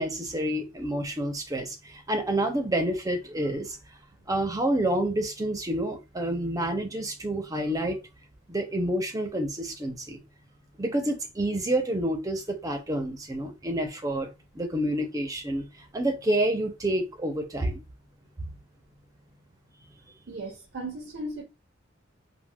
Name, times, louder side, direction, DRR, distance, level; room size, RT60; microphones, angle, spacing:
voice 1, 0.0-3.8 4.3-8.0 8.5-10.2 10.8-17.8, right 1 dB, 20° right, 0.6 m, -28 dB
voice 2, 20.3-21.4, right 2 dB, 85° right, 0.7 m, -36 dB
3.4 x 2.2 x 2.2 m
head